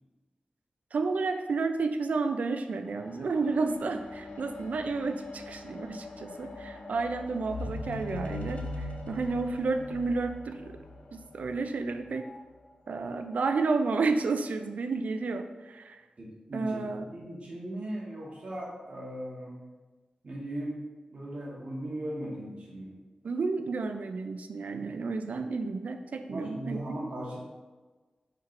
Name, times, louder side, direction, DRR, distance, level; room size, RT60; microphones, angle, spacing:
voice 1, 0.9-10.8 11.1-12.2 12.9-16.0 16.5-17.0 23.2-26.8, right 4 dB, 80° right, 7 dB, 0.3 m, -31 dB
sound 1, 2.9-12.4 13.2-13.3, left 2 dB, 75° left, 0.5 m, -42 dB
voice 2, 16.2-19.6 20.2-20.8 21.1-23.0 26.3-27.4, right 1 dB, 55° right, -4 dB, 1.2 m, -38 dB
4.6 x 4.4 x 2.5 m, 1.3 s
wide cardioid pair, 85°, 3 cm